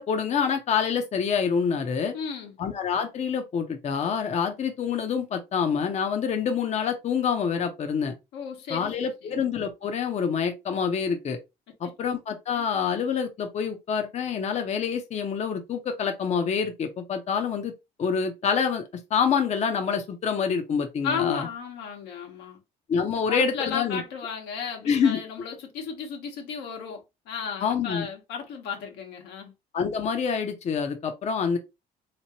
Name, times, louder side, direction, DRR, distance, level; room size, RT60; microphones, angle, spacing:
voice 1, 0.0-2.1 2.6-8.1 8.7-11.4 11.8-17.7 18.0-21.5 22.9-24.0 24.9-25.2 27.6-28.1 29.7-31.6, left 6 dB, 40° left, 0.7 m, -26 dB
voice 2, 2.1-2.6 8.3-9.3 12.1-12.2 21.0-22.6 23.3-29.5, left 6 dB, 85° left, 1.2 m, -34 dB
3.7 x 2.9 x 2.9 m
cardioid pair, 110°, 17 cm